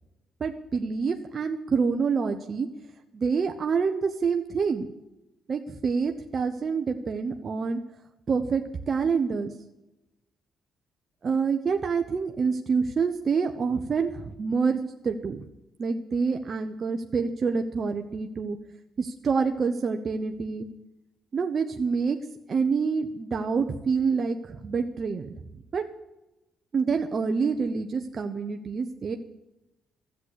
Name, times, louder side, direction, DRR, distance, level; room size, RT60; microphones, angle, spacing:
voice 1, 0.4-2.7 3.1-4.9 5.5-7.8 8.3-9.5 11.2-15.4 15.8-18.6 19.0-20.7 21.3-22.2 22.5-25.3 25.7-25.8 26.7-29.2, right 5 dB, 45° right, 5 dB, 1.0 m, -27 dB
12.5 x 8.0 x 8.4 m, 0.96 s
cardioid pair, 90°, 0 cm